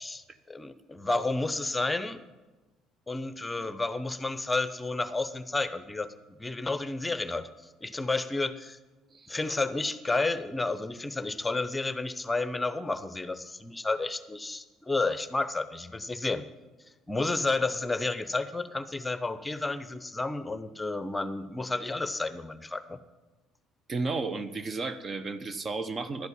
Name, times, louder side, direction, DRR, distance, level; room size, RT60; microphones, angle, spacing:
voice 1, 0.0-2.2 3.1-6.1 6.4-7.5 7.8-8.8 9.3-16.4 17.1-23.0, left 3 dB, 15° left, 12 dB, 0.8 m, -31 dB
voice 2, 23.9-26.3, right 3 dB, 40° right, 12 dB, 0.8 m, -33 dB
12.0 x 8.1 x 7.3 m, 1.2 s
hypercardioid pair, 55°, 0 cm